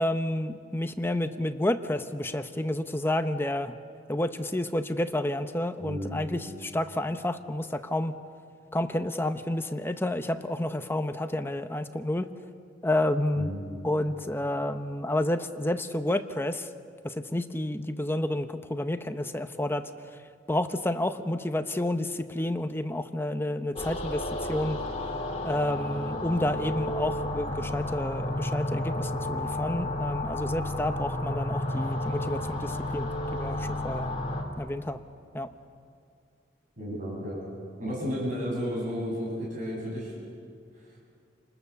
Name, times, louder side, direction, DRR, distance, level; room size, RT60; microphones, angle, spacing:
voice 1, 0.0-3.7 4.1-8.2 8.7-12.3 12.8-13.5 13.8-16.7 17.0-19.9 20.5-24.8 25.4-34.1 34.6-35.0 35.3-35.5, left 1 dB, 10° left, 8 dB, 0.8 m, -30 dB
voice 2, 5.8-6.2 13.3-13.6 36.8-37.4 37.8-40.1 40.8-40.9, equal, 45° right, -4 dB, 7.1 m, -32 dB
sound 1, 23.8-34.4, left 1 dB, 35° left, 2.6 m, -32 dB
29.0 x 20.0 x 7.0 m, 2.3 s
head